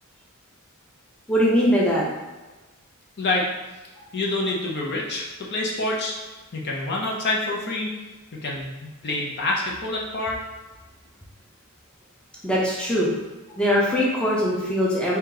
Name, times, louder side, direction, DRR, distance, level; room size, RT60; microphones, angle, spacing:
voice 1, 1.3-2.0 12.4-13.1 13.5-15.2, equal, 5° left, -5 dB, 0.6 m, -21 dB
voice 2, 3.2-3.5 4.1-6.1 6.5-7.9 8.3-10.4, left 2 dB, 50° left, -2 dB, 0.6 m, -27 dB
2.9 x 2.8 x 3.8 m, 1.2 s
head